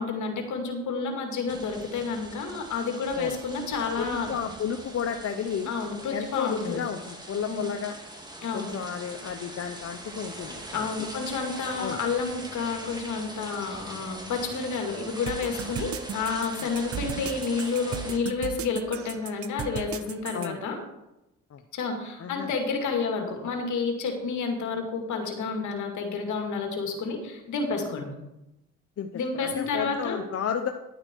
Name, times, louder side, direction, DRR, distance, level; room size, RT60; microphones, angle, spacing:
voice 1, 0.0-4.3 5.7-6.8 7.5-7.6 8.4-8.7 10.7-20.8 21.7-28.1 29.1-30.2, left 4 dB, 75° left, 3 dB, 2.4 m, -30 dB
sound 1, 1.5-18.2, right 1 dB, 15° right, 2.4 m, -42 dB
voice 2, 4.0-5.7 6.1-8.0 8.5-10.9 11.8-12.0 20.3-20.6 21.5-21.6 22.2-22.5 29.0-29.1 29.3-30.7, left 7 dB, 50° left, 6 dB, 0.8 m, -32 dB
sound 2, 15.3-20.5, right 9 dB, 50° right, 0.8 m, -36 dB
11.0 x 8.8 x 4.6 m, 0.93 s
cardioid pair, 90°, 30 cm